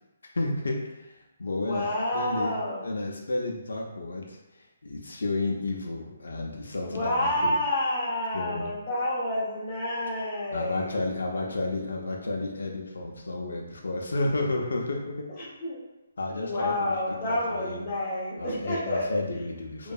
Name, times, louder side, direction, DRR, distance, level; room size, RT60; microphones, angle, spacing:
voice 1, 0.3-2.5 2.8-7.5 8.3-8.7 10.5-15.3 16.2-17.8 18.4-19.9, left 2 dB, 85° left, 0 dB, 0.4 m, -32 dB
voice 2, 1.5-2.8 6.8-11.0 15.4-15.8 16.4-19.2 19.8-19.9, left 1 dB, 20° left, -7 dB, 0.6 m, -29 dB
2.7 x 2.3 x 2.2 m, 1.0 s
hypercardioid pair, 170°, 0 cm